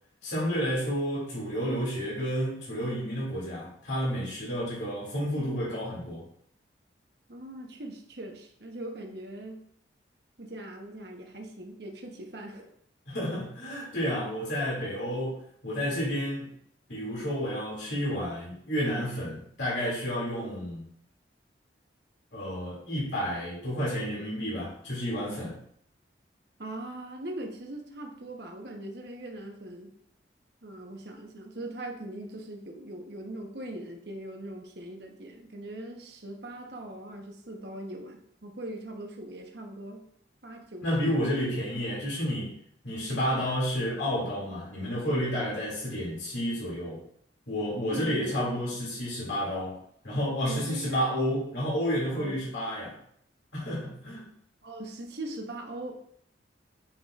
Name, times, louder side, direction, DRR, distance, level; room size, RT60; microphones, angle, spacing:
voice 1, 0.2-6.2 13.1-16.5 16.9-20.9 22.3-25.6 40.8-42.5 42.8-47.0 47.5-53.0 53.5-54.3, equal, 75° left, -6 dB, 2.5 m, -31 dB
voice 2, 7.3-9.6 10.4-12.7 26.6-29.9 30.6-40.0 40.4-41.4 47.9-48.7 50.5-51.4 52.1-52.4 54.6-55.9, right 1 dB, 60° right, 2 dB, 1.1 m, -41 dB
8.8 x 5.0 x 2.5 m, 0.66 s
head